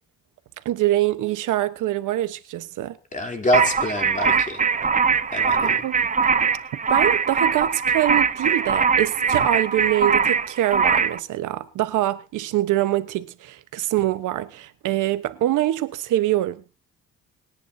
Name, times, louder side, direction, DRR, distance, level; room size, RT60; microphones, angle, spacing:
voice 1, 0.6-3.0 5.6-6.1 6.9-16.8, right 14 dB, 85° right, 1.2 m, -24 dB
voice 2, 3.1-4.6 5.3-5.8, equal, 25° left, 3.5 m, -25 dB
sound 1, 3.5-11.2, right 5 dB, 25° right, 0.8 m, -21 dB
28.5 x 10.0 x 2.8 m
cardioid pair, 90°, 30 cm